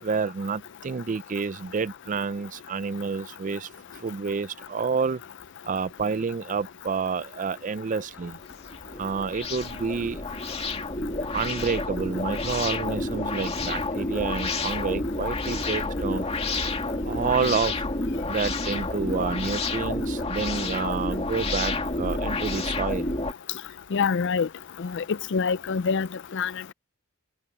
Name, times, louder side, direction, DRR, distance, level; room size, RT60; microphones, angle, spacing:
voice 1, 0.0-3.7 4.0-5.2 5.7-8.4 9.0-10.2 11.3-16.3 17.1-17.7 18.3-23.1, right 5 dB, 35° right, 0.4 m, -29 dB
sound 1, 8.2-23.3, left 2 dB, 30° left, 2.2 m, -29 dB
voice 2, 23.9-24.5 24.8-25.0 25.3-26.1 26.3-26.5, left 5 dB, 60° left, 0.5 m, -25 dB
head